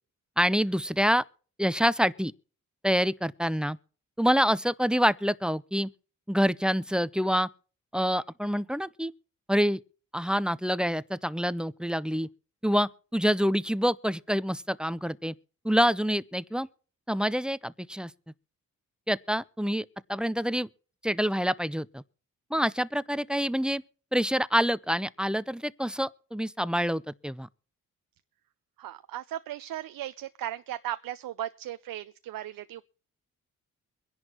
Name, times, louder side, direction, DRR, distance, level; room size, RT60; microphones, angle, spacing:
voice 1, 0.4-1.2 1.6-2.3 2.8-3.8 4.2-5.9 6.3-7.5 7.9-9.1 9.5-9.8 10.1-12.3 12.6-15.3 15.6-16.7 17.1-18.1 19.1-20.7 21.0-22.0 22.5-23.8 24.1-27.5, equal, 5° right, 0.5 m, -26 dB
voice 2, 28.8-32.8, right 13 dB, 85° right, 0.6 m, -37 dB
23.5 x 11.0 x 3.0 m
cardioid pair, 70°, 33 cm